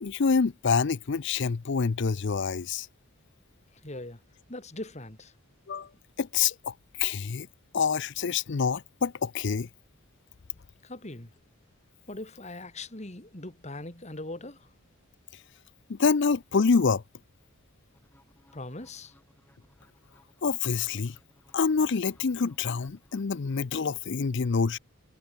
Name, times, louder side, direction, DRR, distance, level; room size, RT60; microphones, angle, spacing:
voice 1, 0.0-2.9 5.7-5.9 6.2-7.5 7.7-9.7 15.9-17.0 20.4-21.2 21.5-24.8, left 5 dB, 55° left, 0.5 m, -26 dB
voice 2, 3.7-4.2 4.5-5.3 10.8-11.3 12.1-14.7 18.5-19.1, left 2 dB, 30° left, 2.3 m, -40 dB
sound 1, 17.9-23.9, left 1 dB, 10° left, 6.6 m, -63 dB
head